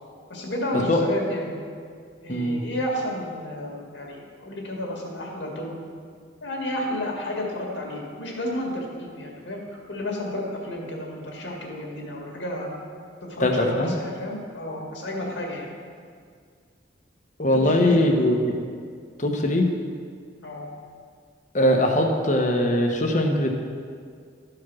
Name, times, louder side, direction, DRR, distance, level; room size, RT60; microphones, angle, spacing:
voice 1, 0.3-1.6 2.2-5.7 6.4-12.7 13.2-15.7 17.5-18.4 20.4-20.7, left 1 dB, 75° left, -1 dB, 1.9 m, -31 dB
voice 2, 2.3-2.6 13.4-13.9 17.4-18.6 19.2-19.7 21.5-23.5, left 1 dB, 40° left, 2 dB, 1.0 m, -21 dB
12.0 x 4.8 x 6.1 m, 2.1 s
head